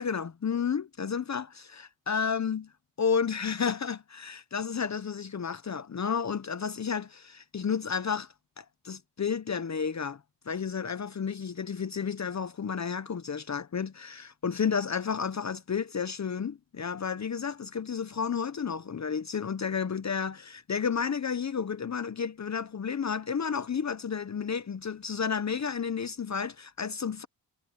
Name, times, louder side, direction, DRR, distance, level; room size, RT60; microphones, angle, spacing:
voice 1, 0.0-2.6 3.0-8.3 8.6-10.2 10.5-27.3, left 6 dB, 40° left, 0.9 m, -31 dB
cardioid pair, 70°, 43 cm